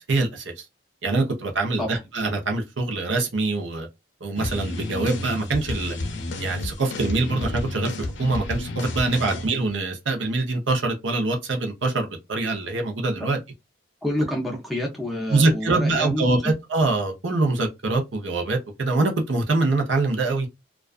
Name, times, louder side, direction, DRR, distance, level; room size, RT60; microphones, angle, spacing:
voice 1, 0.1-0.6 1.0-3.9 4.2-6.0 6.4-13.4 15.3-20.5, right 2 dB, 80° right, 0.7 m, -24 dB
sound 1, 4.4-9.5, left 2 dB, 75° left, 0.5 m, -31 dB
voice 2, 14.0-16.4, left 1 dB, ahead, 0.5 m, -28 dB
2.4 x 2.2 x 2.3 m
head